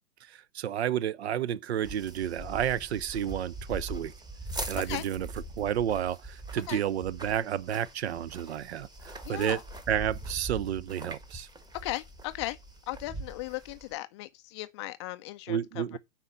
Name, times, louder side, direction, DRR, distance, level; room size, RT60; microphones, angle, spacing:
voice 1, 0.3-4.1 4.7-5.3 5.6-9.6 9.9-11.5 15.5-16.0, right 10 dB, 50° right, 0.6 m, -31 dB
sound 1, 1.8-14.0, right 2 dB, 10° right, 1.2 m, -42 dB
voice 2, 9.2-9.6 11.8-12.6 12.9-16.0, left 18 dB, 20° left, 0.4 m, -37 dB
9.1 x 4.4 x 6.6 m
figure-of-eight pair, 105°, 42 cm